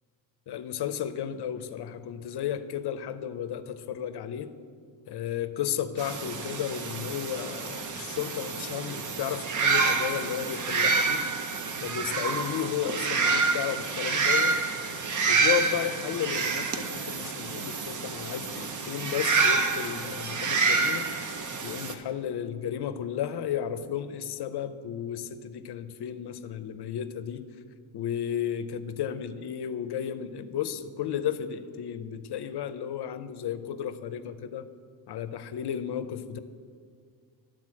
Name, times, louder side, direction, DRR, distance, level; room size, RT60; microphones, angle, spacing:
voice 1, 0.5-4.5 5.1-11.2 11.8-14.6 15.3-21.1 21.6-27.4 27.9-34.7 35.1-36.4, left 9 dB, 60° left, 12 dB, 0.6 m, -33 dB
sound 1, 6.0-21.9, right 4 dB, 40° right, 0.7 m, -28 dB
11.5 x 3.9 x 7.6 m, 2.1 s
wide cardioid pair, 140°, 45 cm